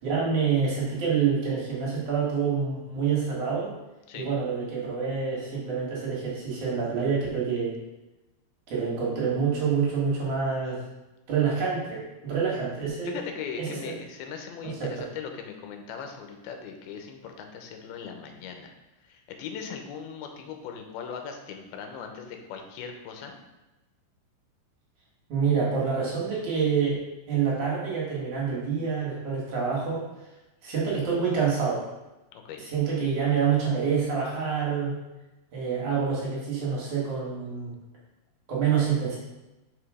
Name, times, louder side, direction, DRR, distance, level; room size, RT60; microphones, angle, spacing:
voice 1, 0.0-3.7 4.1-7.7 8.7-10.8 11.3-13.2 13.6-13.9 14.6-15.0 25.3-27.0 27.3-30.0 30.6-31.9 32.6-34.9 35.5-37.7 38.5-39.2, right 6 dB, 60° right, -5 dB, 2.7 m, -27 dB
voice 2, 13.0-18.7 19.0-23.4 32.3-32.6, left 6 dB, 80° left, 4 dB, 2.6 m, -39 dB
5.7 x 4.9 x 4.9 m, 1.0 s
omnidirectional pair, 4.5 m